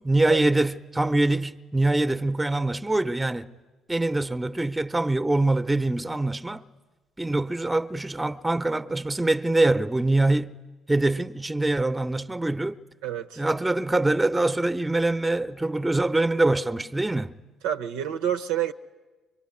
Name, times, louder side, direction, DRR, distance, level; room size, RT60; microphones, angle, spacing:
voice 1, 0.0-3.5 3.9-6.6 7.2-10.5 10.9-12.8 13.4-17.4, right 2 dB, 15° right, 0.8 m, -24 dB
voice 2, 13.0-13.4 17.6-18.7, right 10 dB, 75° right, 0.7 m, -28 dB
24.0 x 22.0 x 9.7 m
hypercardioid pair, 50°, 0 cm